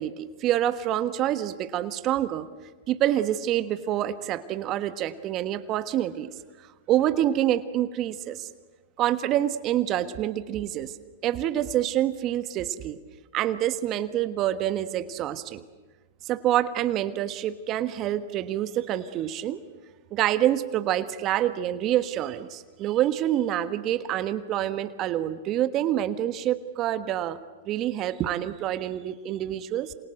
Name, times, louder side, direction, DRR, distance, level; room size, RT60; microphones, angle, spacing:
voice 1, 0.0-2.4 2.9-6.3 6.9-8.5 9.0-10.9 11.2-13.0 13.3-15.6 16.2-19.6 20.1-27.4 27.7-29.9, right 12 dB, 40° right, 12 dB, 1.4 m, -27 dB
27.5 x 27.0 x 7.8 m, 1.3 s
hypercardioid pair, 110°, 0 cm